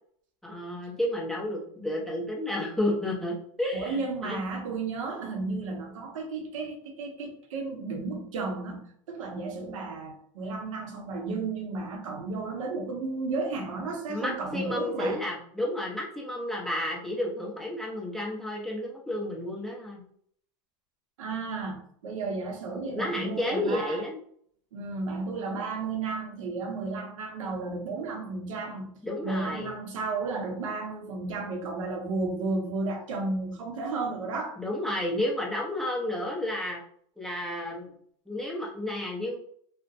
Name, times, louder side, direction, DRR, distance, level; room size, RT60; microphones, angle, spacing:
voice 1, 0.4-4.4 14.1-20.0 22.9-24.2 29.0-29.7 34.6-36.8 37.2-37.9 38.3-39.4, left 1 dB, ahead, -4 dB, 0.7 m, -31 dB
voice 2, 3.7-15.2 21.2-24.0 24.7-34.6, right 3 dB, 90° right, 3 dB, 0.7 m, -33 dB
2.4 x 2.1 x 2.6 m, 0.63 s
supercardioid pair, 120°, 16 cm